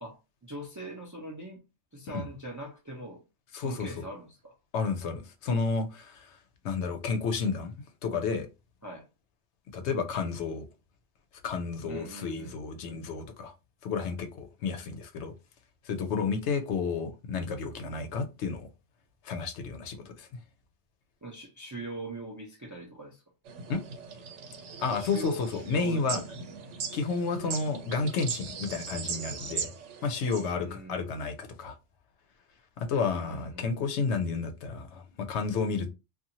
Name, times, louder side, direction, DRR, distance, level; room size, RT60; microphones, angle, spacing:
voice 1, 0.0-1.6 1.9-3.2 3.5-4.5 8.8-9.1 11.9-12.6 21.2-23.2 25.0-26.2 30.5-31.0 33.1-33.7, right 1 dB, 30° right, 0.4 m, -41 dB
voice 2, 3.5-3.9 4.7-6.4 6.6-7.7 8.0-8.5 9.7-10.7 11.4-13.5 13.8-15.3 15.8-18.7 19.2-20.4 23.7-23.8 24.8-26.2 26.9-29.7 30.0-31.8 32.8-35.9, left 4 dB, 75° left, 0.9 m, -31 dB
sound 1, 23.5-30.5, right 6 dB, 90° right, 0.9 m, -39 dB
2.6 x 2.4 x 2.7 m
omnidirectional pair, 1.2 m